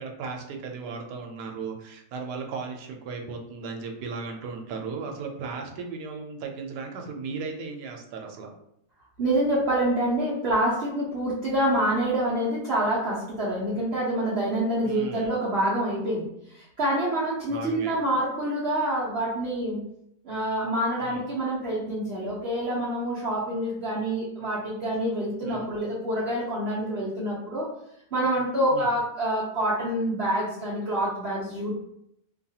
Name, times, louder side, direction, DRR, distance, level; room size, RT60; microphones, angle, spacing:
voice 1, 0.0-8.5 14.8-15.3 17.5-17.9 21.0-21.2 25.4-25.7 28.7-28.9, right 4 dB, 80° right, 3 dB, 1.1 m, -36 dB
voice 2, 9.2-19.8 20.2-27.7 28.1-31.8, right 1 dB, 60° right, -6 dB, 0.6 m, -27 dB
2.8 x 2.3 x 2.7 m, 0.75 s
omnidirectional pair, 1.8 m